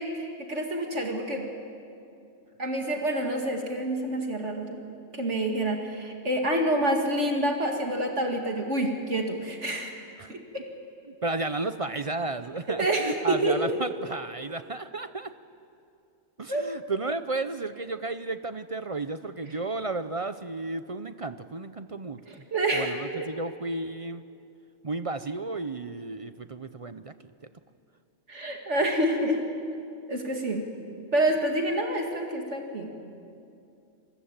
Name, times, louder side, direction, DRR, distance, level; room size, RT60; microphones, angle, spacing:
voice 1, 0.0-1.4 2.6-4.8 5.1-9.9 10.3-10.6 12.8-13.6 16.5-16.6 22.3-23.3 28.3-29.4 30.1-30.7 31.1-32.9, right 1 dB, 65° right, 2 dB, 2.6 m, -27 dB
voice 2, 11.1-15.3 16.4-22.3 22.7-24.2 24.8-27.3, right 3 dB, 35° right, 11 dB, 0.6 m, -33 dB
27.5 x 21.5 x 8.8 m, 2.6 s
omnidirectional pair, 1.3 m